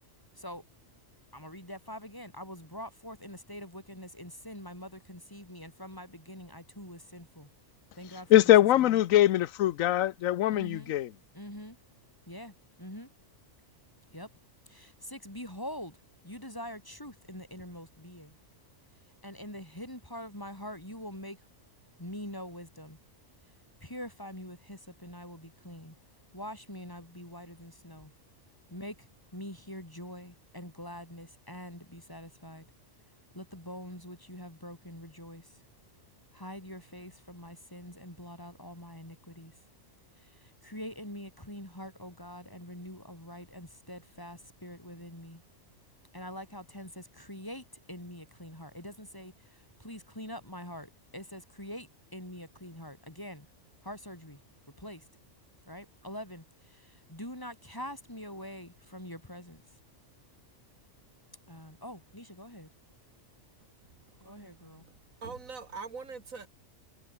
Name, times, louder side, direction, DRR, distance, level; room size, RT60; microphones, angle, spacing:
voice 1, 0.3-0.7 1.3-7.5 7.9-9.1 10.5-10.9 11.3-11.8 12.2-13.1 14.1-14.3 14.7-18.4 18.9-21.5 22.0-23.0 23.4-26.0 26.3-28.1 28.7-32.7 33.3-35.6 36.3-39.7 40.1-45.4 46.1-53.5 53.8-55.2 55.7-59.8 61.5-62.7 64.2-64.9, equal, 15° left, 6.1 m, -44 dB
voice 2, 8.3-11.1, left 13 dB, 85° left, 1.0 m, -22 dB
voice 3, 63.8-64.9 65.2-66.5, right 4 dB, 85° right, 2.8 m, -44 dB
omnidirectional pair, 1.4 m